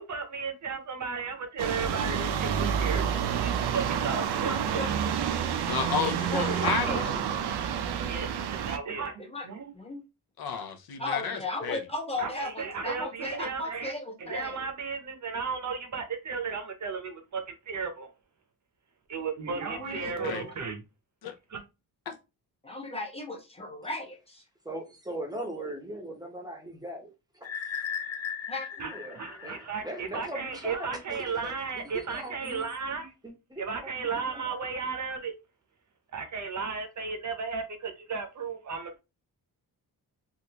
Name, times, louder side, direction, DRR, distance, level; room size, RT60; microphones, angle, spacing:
voice 1, 0.0-4.6 8.0-9.7 12.2-13.9 14.2-18.1 19.1-20.8 21.5-21.6 28.8-33.1 33.6-35.3 36.1-39.0, right 5 dB, 45° right, 0.7 m, -34 dB
sound 1, 1.6-8.8, right 8 dB, 85° right, 0.5 m, -29 dB
voice 2, 4.4-5.1 6.3-7.0 9.2-9.5 9.7-10.0 11.0-14.7 19.5-20.5 22.6-24.4 28.5-28.7, left 2 dB, 15° left, 1.0 m, -36 dB
voice 3, 5.6-7.2 10.4-11.8 19.9-20.4 21.2-21.3 22.1-22.2, left 6 dB, 70° left, 0.7 m, -32 dB
voice 4, 24.6-27.5 28.9-32.7 33.2-34.5, right 1 dB, 10° right, 0.7 m, -40 dB
sound 2, 27.4-30.3, left 7 dB, 40° left, 0.6 m, -37 dB
3.4 x 2.5 x 2.8 m
wide cardioid pair, 155°, 39 cm